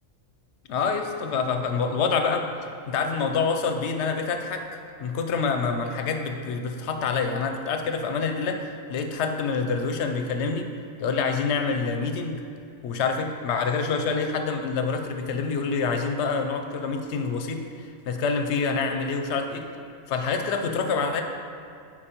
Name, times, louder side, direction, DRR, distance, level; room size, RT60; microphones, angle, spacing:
voice 1, 0.7-2.5 2.9-4.6 5.0-10.7 11.0-12.4 12.8-17.6 18.1-19.6 20.1-21.2, left 5 dB, 65° left, 5 dB, 0.8 m, -26 dB
9.9 x 4.3 x 2.9 m, 2.5 s
omnidirectional pair, 1.4 m